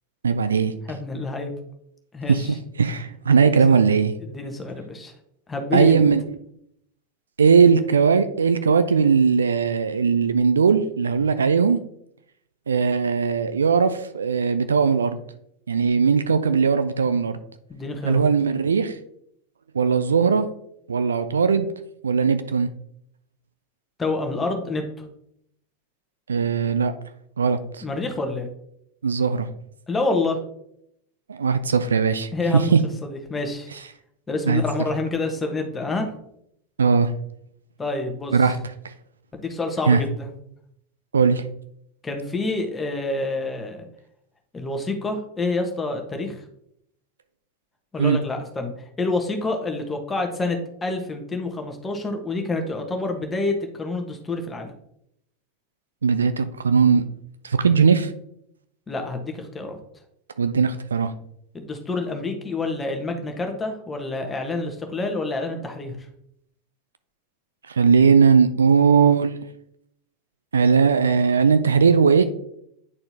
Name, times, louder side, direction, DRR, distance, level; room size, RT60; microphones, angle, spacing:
voice 1, 0.2-0.7 2.3-2.5 2.8-4.1 5.7-6.2 7.4-11.8 12.7-15.2 15.7-17.4 18.0-19.0 19.7-20.5 20.9-21.7 22.0-22.7 26.3-26.9 27.4-27.8 29.0-29.5 31.3-32.3 32.7-32.8 34.5-34.6 36.8-37.1 38.3-38.6 39.9-40.0 41.1-41.4 48.0-48.2 56.0-57.1 57.4-58.1 60.4-61.1 67.7-69.4 70.5-72.2, right 5 dB, 70° right, 11 dB, 0.4 m, -19 dB
voice 2, 0.9-1.5 2.1-2.6 3.3-3.8 4.2-5.1 5.5-5.9 17.7-18.2 24.0-25.1 27.8-28.5 29.9-30.4 32.3-32.7 33.0-33.7 34.3-36.1 37.8-38.4 39.3-40.3 42.0-43.8 44.5-46.4 47.9-48.7 49.0-54.7 58.9-59.8 61.5-66.0, left 3 dB, 15° left, 4 dB, 1.2 m, -28 dB
9.6 x 4.3 x 2.8 m, 0.74 s
figure-of-eight pair, 85°, 0 cm